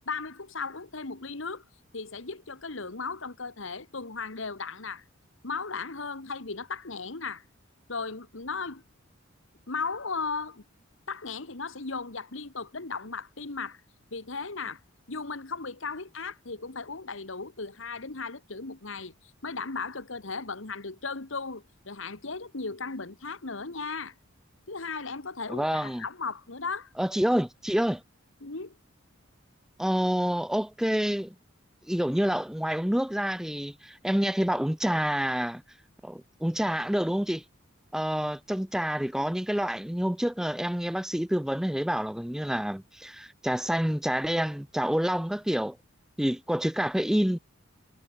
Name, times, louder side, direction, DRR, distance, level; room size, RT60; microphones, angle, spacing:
voice 1, 0.1-1.6 1.9-5.0 5.4-7.4 7.9-8.8 9.7-10.6 11.1-13.8 14.1-14.8 15.1-24.1 24.7-26.9 28.4-28.8, left 4 dB, 70° left, 1.7 m, -36 dB
voice 2, 25.5-26.0 27.0-28.0 29.8-31.3 31.9-35.6 36.0-37.4 37.9-45.8 46.2-47.4, equal, 5° right, 0.4 m, -28 dB
head